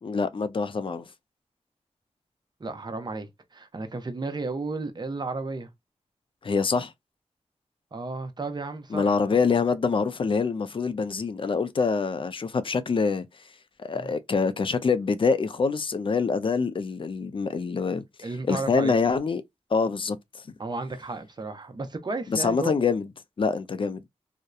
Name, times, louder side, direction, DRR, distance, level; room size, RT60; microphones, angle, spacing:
voice 1, 0.0-1.1 6.4-6.9 8.9-13.3 13.8-19.4 19.7-20.2 22.3-23.1 23.4-24.0, left 5 dB, 45° left, 0.4 m, -25 dB
voice 2, 2.6-5.7 7.9-9.2 13.9-14.1 18.2-18.9 20.6-22.7, right 3 dB, 40° right, 0.6 m, -33 dB
2.7 x 2.1 x 2.2 m
wide cardioid pair, 80°, 12 cm